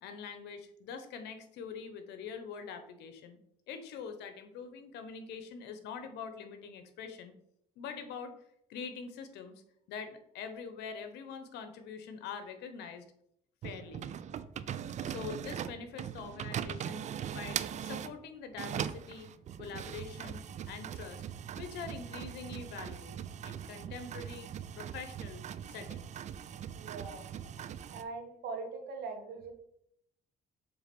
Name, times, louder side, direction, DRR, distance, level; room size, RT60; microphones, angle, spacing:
voice 1, 0.0-3.4 3.7-7.3 7.8-8.3 8.7-9.6 9.9-13.0 13.6-14.0 15.0-17.0 17.3-19.3 19.6-21.2 21.5-23.2 23.4-24.5 24.8-26.2, left 6 dB, 80° left, 8 dB, 1.0 m, -44 dB
sound 1, 13.6-18.2 18.5-28.0, right 9 dB, 45° right, 0.4 m, -40 dB
voice 2, 26.7-27.2 27.9-29.5, right 4 dB, 75° right, 4 dB, 1.5 m, -41 dB
7.2 x 3.5 x 5.3 m, 0.75 s
cardioid pair, 110°, 17 cm